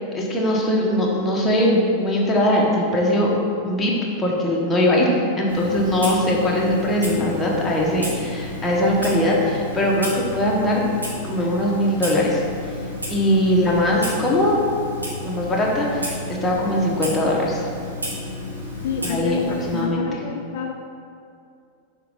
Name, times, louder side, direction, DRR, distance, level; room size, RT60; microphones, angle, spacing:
voice 1, 0.1-3.3 3.6-3.9 4.2-10.8 11.2-12.7 13.1-14.5 15.2-17.7 19.0-20.2, left 1 dB, 15° left, -4 dB, 1.4 m, -21 dB
Clock, 5.5-19.8, left 1 dB, 80° right, 1.6 m, -32 dB
voice 2, 18.8-20.7, left 4 dB, 55° left, 2 dB, 0.4 m, -28 dB
6.6 x 4.5 x 5.3 m, 2.4 s
figure-of-eight pair, 90°, 0 cm